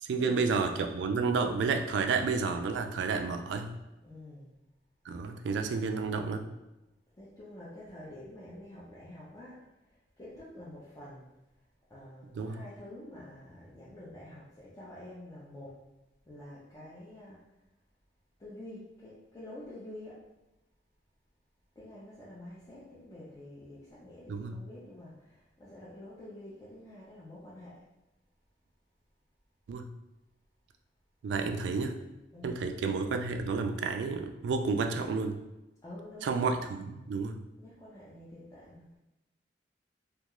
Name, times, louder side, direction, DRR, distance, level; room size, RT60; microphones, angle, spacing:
voice 1, 0.0-3.8 5.1-6.5 12.3-12.6 24.3-24.6 29.7-29.9 31.2-32.0 32.4-35.4 36.2-37.4, right 4 dB, 80° right, 6 dB, 0.3 m, -31 dB
voice 2, 4.0-4.5 7.2-9.6 10.2-11.3 11.9-15.8 16.3-17.4 18.4-20.2 21.8-27.8 32.3-32.6 35.8-36.4 37.6-38.8, left 1 dB, 20° left, -9 dB, 0.5 m, -48 dB
2.3 x 2.3 x 2.9 m, 0.99 s
head